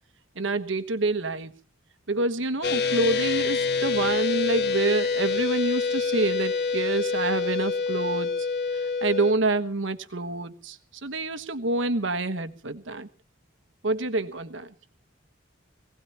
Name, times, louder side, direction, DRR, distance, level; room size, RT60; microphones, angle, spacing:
voice 1, 0.3-1.5 2.1-8.5 8.7-13.1 13.8-14.7, right 2 dB, 80° right, 10 dB, 1.3 m, -27 dB
sound 1, 2.6-9.3, left 5 dB, 55° left, 1.2 m, -26 dB
22.5 x 17.5 x 3.0 m, 0.40 s
head